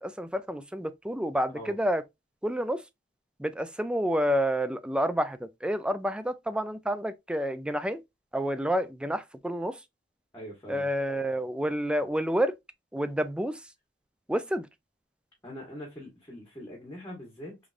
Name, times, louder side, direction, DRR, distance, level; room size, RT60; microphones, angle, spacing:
voice 1, 0.0-2.0 2.4-2.8 3.4-8.0 8.3-9.8 10.7-12.5 12.9-13.6 14.3-14.7, equal, 5° right, 0.4 m, -29 dB
voice 2, 10.3-10.9 15.4-17.6, equal, 15° left, 1.2 m, -42 dB
3.7 x 3.3 x 2.4 m
head